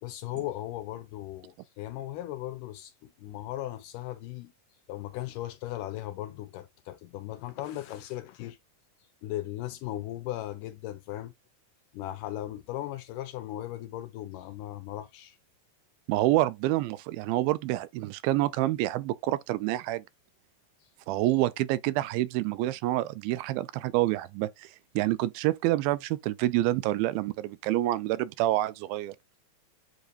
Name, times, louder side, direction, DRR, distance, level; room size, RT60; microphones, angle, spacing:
voice 1, 0.0-4.5 4.9-8.6 9.2-11.3 11.9-15.4, left 14 dB, 80° left, 2.0 m, -37 dB
voice 2, 16.1-20.0 21.1-24.7 25.0-29.2, right 16 dB, 90° right, 2.4 m, -27 dB
7.7 x 2.7 x 2.5 m
omnidirectional pair, 4.2 m